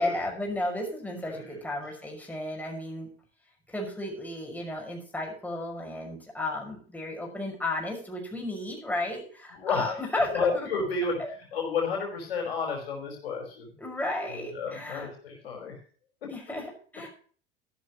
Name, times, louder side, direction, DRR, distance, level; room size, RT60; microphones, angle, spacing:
voice 1, 0.0-3.1 3.7-10.7 11.2-11.3 13.8-15.1 16.3-17.1, left 1 dB, 5° left, 0 dB, 5.8 m, -33 dB
voice 2, 9.5-10.0 10.3-13.7 14.3-15.8, left 4 dB, 70° left, 2 dB, 5.2 m, -31 dB
14.5 x 12.5 x 3.1 m, 0.43 s
figure-of-eight pair, 75°, 31 cm